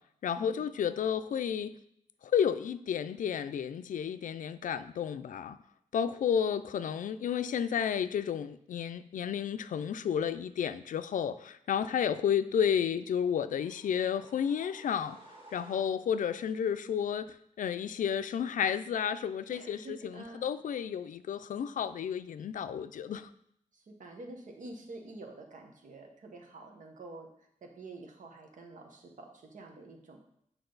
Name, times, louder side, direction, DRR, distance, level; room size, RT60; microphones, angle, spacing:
voice 1, 0.2-1.7 2.2-5.6 5.9-15.2 15.5-23.3, left 8 dB, 75° left, 13 dB, 0.4 m, -32 dB
sound 1, 13.1-16.3, right 2 dB, 45° right, 1.7 m, -56 dB
voice 2, 19.5-20.4 23.7-27.3 27.6-30.2, right 2 dB, 70° right, 3 dB, 1.3 m, -48 dB
8.8 x 4.7 x 3.9 m, 0.73 s
wide cardioid pair, 150°, 14 cm